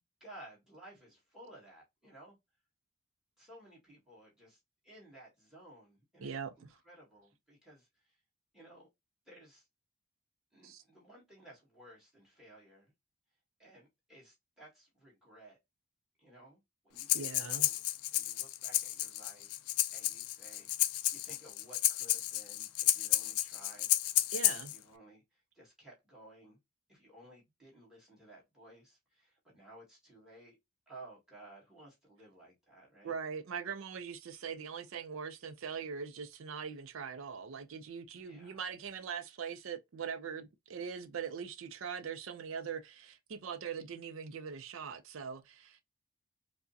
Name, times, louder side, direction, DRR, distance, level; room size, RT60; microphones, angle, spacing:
voice 1, 0.0-2.4 3.4-6.3 6.6-8.2 8.5-8.9 9.2-9.7 10.5-12.9 13.6-15.6 16.2-17.8 18.1-24.0 24.5-26.6 26.9-30.6 30.9-33.1 38.2-38.6, right 1 dB, ahead, 1.5 m, -56 dB
voice 2, 6.2-6.7 10.6-10.8 17.1-17.7 24.3-24.7 33.0-45.8, right 6 dB, 60° right, 0.4 m, -41 dB
Breathing, 17.0-24.8, left 14 dB, 75° left, 0.4 m, -32 dB
4.6 x 2.0 x 2.6 m
head